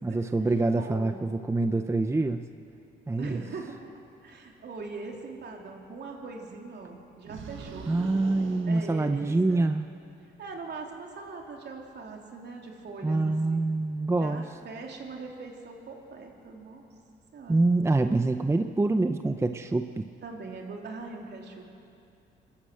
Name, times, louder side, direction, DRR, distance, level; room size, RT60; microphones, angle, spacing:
voice 1, 0.0-2.4 3.1-3.4 7.9-9.9 13.0-14.4 17.5-20.1, right 2 dB, 15° right, 8 dB, 0.7 m, -26 dB
voice 2, 0.7-1.2 3.2-3.9 4.2-7.9 8.7-9.7 10.4-13.6 14.2-16.8 17.3-17.6 20.2-21.6, right 4 dB, 60° right, 1 dB, 3.3 m, -41 dB
sound 1, 7.3-9.7, right 6 dB, 75° right, 1.6 m, -43 dB
25.5 x 13.0 x 8.0 m, 2.7 s
cardioid pair, 90°, 20 cm